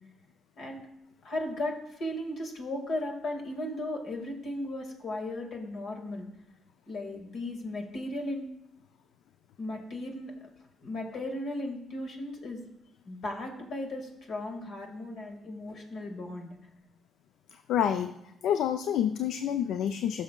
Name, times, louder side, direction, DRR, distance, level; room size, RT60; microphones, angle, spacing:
voice 1, 1.2-6.3 6.9-8.5 9.6-10.5 10.8-12.6 13.1-16.6, left 1 dB, 65° left, 2 dB, 1.7 m, -36 dB
voice 2, 17.7-18.2 18.4-20.2, left 9 dB, 80° left, 8 dB, 0.3 m, -28 dB
14.5 x 6.2 x 2.2 m, 0.83 s
cardioid pair, 90°, 0 cm